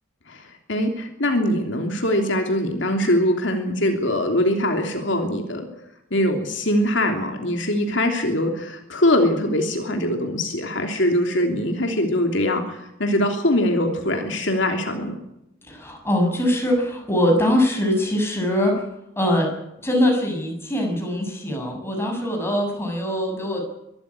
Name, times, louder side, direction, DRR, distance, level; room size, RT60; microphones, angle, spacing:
voice 1, 0.3-5.7 6.1-15.2, left 1 dB, 65° left, 4 dB, 3.1 m, -22 dB
voice 2, 15.7-18.8 19.1-19.5 19.8-23.6, left 1 dB, 10° left, 2 dB, 6.8 m, -22 dB
24.0 x 14.0 x 9.8 m, 0.84 s
head